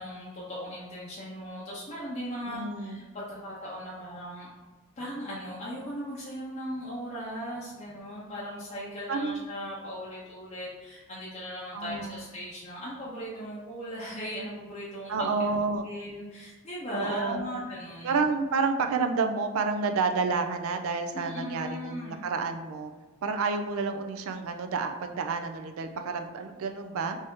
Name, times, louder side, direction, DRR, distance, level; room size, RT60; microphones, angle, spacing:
voice 1, 0.0-4.5 5.0-15.3 15.8-18.2 21.1-22.3, equal, 30° left, -7 dB, 0.6 m, -38 dB
voice 2, 2.5-3.0 9.1-9.5 11.7-12.2 15.1-15.9 16.9-17.4 18.0-22.9 23.2-27.2, right 4 dB, 70° right, 6 dB, 0.4 m, -29 dB
3.3 x 2.7 x 3.5 m, 1.3 s
head